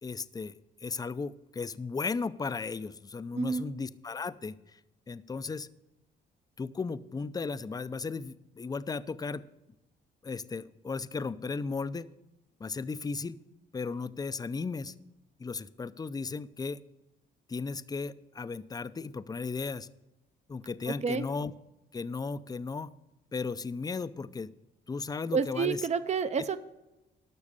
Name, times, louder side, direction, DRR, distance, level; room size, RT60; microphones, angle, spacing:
voice 1, 0.0-4.5 5.1-5.7 6.6-9.4 10.2-12.1 12.6-13.4 13.7-14.9 15.4-16.8 17.5-19.9 20.5-21.5 21.9-22.9 23.3-24.5 24.9-25.9, left 4 dB, 20° left, 15 dB, 0.5 m, -35 dB
voice 2, 25.3-26.6, right 5 dB, 35° right, 12 dB, 0.6 m, -29 dB
12.0 x 6.3 x 6.8 m, 0.98 s
cardioid pair, 90°, 20 cm